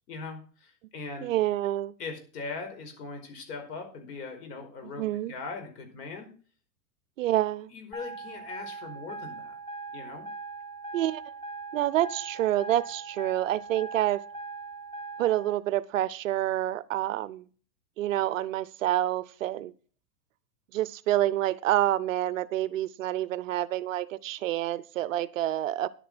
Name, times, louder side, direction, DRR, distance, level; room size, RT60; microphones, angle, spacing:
voice 1, 0.1-1.3 2.0-6.3 7.2-7.3 7.7-9.6 9.9-10.3, left 4 dB, 70° left, 5 dB, 5.0 m, -40 dB
voice 2, 1.2-1.9 5.0-5.3 7.2-7.7 10.9-11.2 11.7-14.2 15.2-17.4 18.0-19.7 20.7-25.9, right 14 dB, 50° right, 19 dB, 0.6 m, -28 dB
sound 1, 7.9-15.5, right 3 dB, 10° left, 2.5 m, -40 dB
10.5 x 9.2 x 6.0 m, 0.40 s
supercardioid pair, 160°, 50 cm